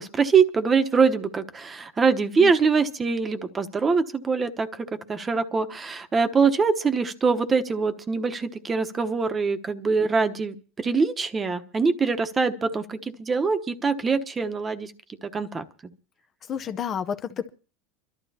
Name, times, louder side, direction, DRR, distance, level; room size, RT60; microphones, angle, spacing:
voice 1, 0.0-14.9 15.2-15.6, right 5 dB, 20° right, 1.0 m, -23 dB
voice 2, 16.5-17.5, left 8 dB, 35° left, 0.6 m, -30 dB
29.5 x 12.0 x 2.8 m
supercardioid pair, 115°, 0 cm